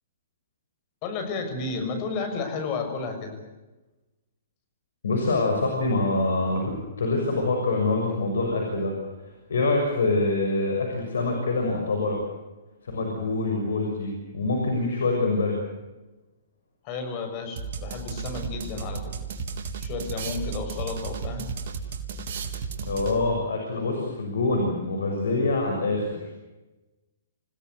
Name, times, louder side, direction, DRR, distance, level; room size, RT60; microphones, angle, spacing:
voice 1, 1.0-3.4 16.8-19.1 19.8-21.5, left 4 dB, 40° left, 6 dB, 6.9 m, -32 dB
voice 2, 5.0-6.6 7.0-8.9 9.5-12.2 12.9-15.6 22.8-26.2, left 2 dB, 75° left, 2 dB, 6.6 m, -25 dB
sound 1, 17.6-23.4, right 5 dB, 55° right, 3.6 m, -34 dB
28.5 x 17.5 x 8.1 m, 1.1 s
hypercardioid pair, 125°, 0 cm